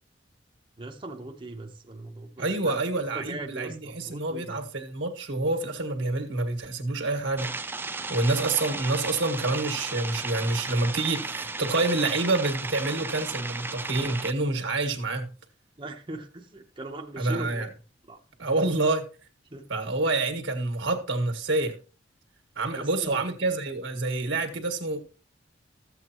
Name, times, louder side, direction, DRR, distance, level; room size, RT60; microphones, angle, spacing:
voice 1, 0.8-2.8 3.1-4.6 15.8-17.6 18.1-18.2 19.5-19.6 22.8-23.2, right 2 dB, 25° right, 0.8 m, -39 dB
voice 2, 2.4-7.5 8.1-15.3 17.2-17.7 18.4-19.0 19.7-21.8 22.6-25.0, right 2 dB, 85° right, 1.7 m, -27 dB
sound 1, 7.4-14.3, right 3 dB, 10° right, 0.4 m, -35 dB
14.0 x 8.1 x 3.0 m
head